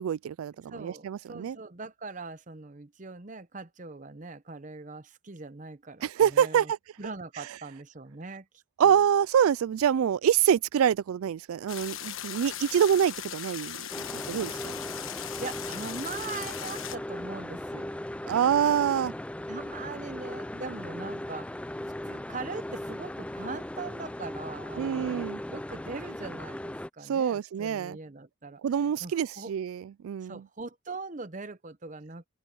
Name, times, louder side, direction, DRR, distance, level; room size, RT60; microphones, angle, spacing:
voice 1, 0.0-1.6 6.0-6.8 8.8-14.7 18.3-19.1 24.8-25.4 27.0-28.0 28.6-30.4, right 8 dB, 90° right, 0.3 m, -26 dB
voice 2, 0.7-6.7 7.0-8.5 8.8-9.0 15.4-18.0 19.5-21.6 22.1-29.5 30.2-32.2, right 3 dB, 40° right, 0.8 m, -41 dB
sound 1, 11.7-17.0, left 10 dB, 80° left, 1.3 m, -39 dB
sound 2, 13.9-26.9, left 1 dB, 5° left, 0.3 m, -38 dB
open air
head